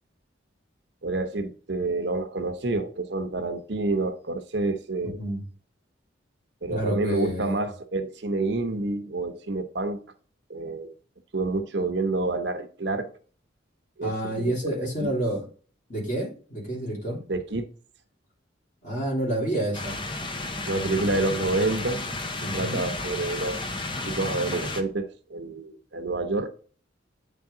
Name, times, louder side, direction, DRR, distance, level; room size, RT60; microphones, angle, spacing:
voice 1, 1.0-5.2 6.6-10.0 10.5-10.9 11.3-13.1 14.0-14.5 14.8-15.1 17.3-17.7 20.7-22.1 22.4-23.7 24.0-26.5, right 2 dB, 65° right, 0.8 m, -28 dB
voice 2, 5.0-5.4 6.7-7.6 14.0-15.4 15.9-17.2 18.8-20.0 20.9-21.1 22.4-22.8, right 1 dB, 40° left, 3.2 m, -29 dB
sound 1, 19.7-24.8, left 2 dB, 25° left, 0.7 m, -32 dB
8.5 x 3.5 x 3.8 m
head